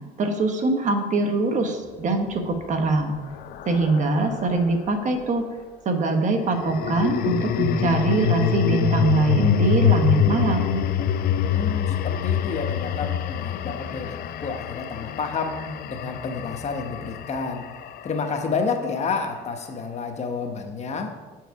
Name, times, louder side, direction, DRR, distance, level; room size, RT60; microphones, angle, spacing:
voice 1, 0.2-3.2 3.7-5.5 5.8-10.8, right 3 dB, 45° right, 5 dB, 1.0 m, -23 dB
sound 1, 2.3-4.8 6.4-18.7, left 8 dB, 60° left, 0.4 m, -25 dB
voice 2, 11.5-17.7 18.0-21.1, left 4 dB, 40° left, 4 dB, 0.9 m, -30 dB
7.9 x 4.7 x 4.6 m, 1.3 s
cardioid pair, 110°, 17 cm